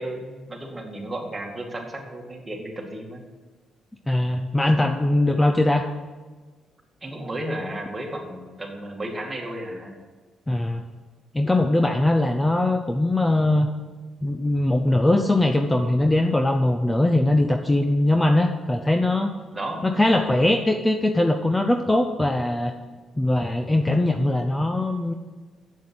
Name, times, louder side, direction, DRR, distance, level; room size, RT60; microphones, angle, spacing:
voice 1, 0.0-3.2 7.0-9.9 19.5-19.8, right 1 dB, 20° right, 0 dB, 2.3 m, -33 dB
voice 2, 4.1-5.8 10.5-10.8 11.3-13.7 14.2-19.3 19.8-22.7 23.2-25.1, left 1 dB, 15° left, 5 dB, 0.6 m, -21 dB
7.5 x 7.4 x 7.9 m, 1.3 s
cardioid pair, 90°, 0 cm